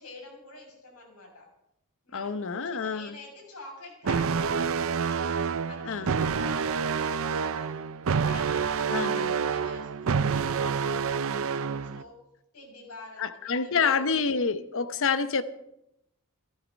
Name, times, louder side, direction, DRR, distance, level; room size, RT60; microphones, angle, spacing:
voice 1, 0.0-1.5 2.0-7.8 8.2-12.2 12.5-14.1 14.9-15.0, left 2 dB, 85° left, 6.5 m, -48 dB
voice 2, 2.1-3.1 5.9-6.1 8.9-9.4 13.2-15.4, left 5 dB, 65° left, 0.8 m, -28 dB
sound 1, 4.0-12.0, right 6 dB, 65° right, 0.6 m, -28 dB
16.0 x 13.5 x 5.3 m
head